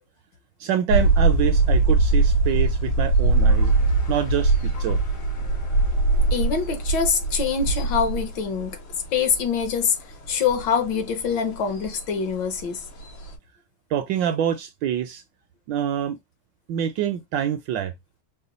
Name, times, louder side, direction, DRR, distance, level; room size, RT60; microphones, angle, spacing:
voice 1, 0.6-3.7 4.1-5.0 13.9-15.2 15.7-16.2 16.7-17.9, right 9 dB, 75° right, 1.1 m, -26 dB
sound 1, 0.9-13.4, right 3 dB, 90° left, 2.6 m, -22 dB
sound 2, 3.1-10.2, left 3 dB, 45° left, 0.4 m, -44 dB
voice 2, 6.3-8.8 9.1-10.0 10.3-12.8, left 6 dB, 65° left, 1.5 m, -24 dB
4.8 x 2.2 x 3.9 m
omnidirectional pair, 2.3 m